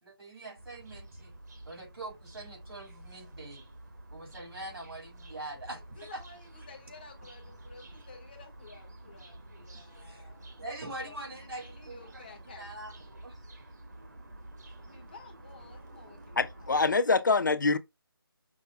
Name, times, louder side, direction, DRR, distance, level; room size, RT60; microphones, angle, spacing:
voice 1, 0.0-1.3 1.6-3.6 4.1-6.2 9.9-10.3 10.6-12.2 12.6-13.4, right 2 dB, 80° right, 3.2 m, -43 dB
sound 1, 0.6-17.0, right 1 dB, 45° right, 1.2 m, -50 dB
voice 2, 5.3-5.7 5.9-10.5 11.0-12.7 14.7-16.8, left 4 dB, 25° left, 1.0 m, -53 dB
voice 3, 16.4-17.8, left 4 dB, 50° left, 0.4 m, -25 dB
6.0 x 2.1 x 3.4 m
figure-of-eight pair, 175°, 13 cm